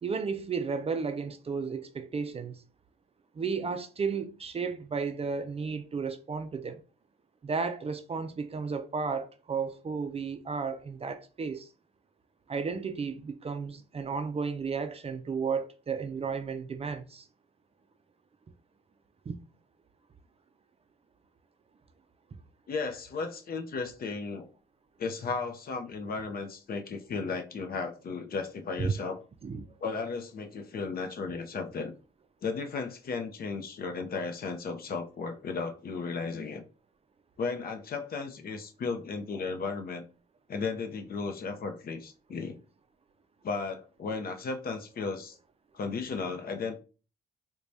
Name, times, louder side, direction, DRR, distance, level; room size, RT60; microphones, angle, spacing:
voice 1, 0.0-2.6 3.4-6.8 7.4-11.7 12.5-17.2 19.3-19.4 28.8-28.9 29.4-29.6, right 5 dB, 30° right, 0.4 m, -33 dB
voice 2, 22.7-24.5 25.0-29.2 29.8-31.9 32.4-36.6 37.4-40.0 40.5-42.6 43.4-45.4 45.7-46.7, left 4 dB, 50° left, 0.7 m, -35 dB
4.6 x 2.3 x 2.7 m
cardioid pair, 90°, 20 cm